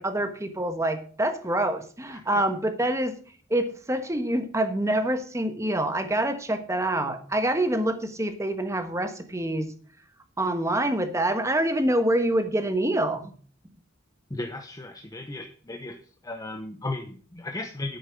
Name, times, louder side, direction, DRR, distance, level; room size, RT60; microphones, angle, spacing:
voice 1, 0.0-3.2 3.5-9.7 10.4-13.3, right 1 dB, 15° right, 7 dB, 1.2 m, -26 dB
voice 2, 14.3-15.9 16.2-18.0, left 2 dB, 20° left, 5 dB, 0.9 m, -35 dB
10.0 x 8.2 x 5.2 m, 0.43 s
head